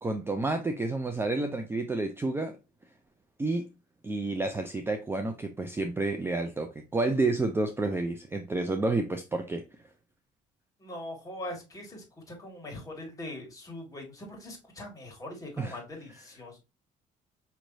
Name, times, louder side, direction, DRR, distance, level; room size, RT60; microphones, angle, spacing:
voice 1, 0.0-2.6 3.4-3.7 4.0-9.7 15.6-15.8, right 2 dB, 15° right, 0.5 m, -30 dB
voice 2, 10.8-16.6, left 1 dB, 20° left, 2.0 m, -42 dB
5.5 x 3.1 x 2.6 m
cardioid pair, 110°, 17 cm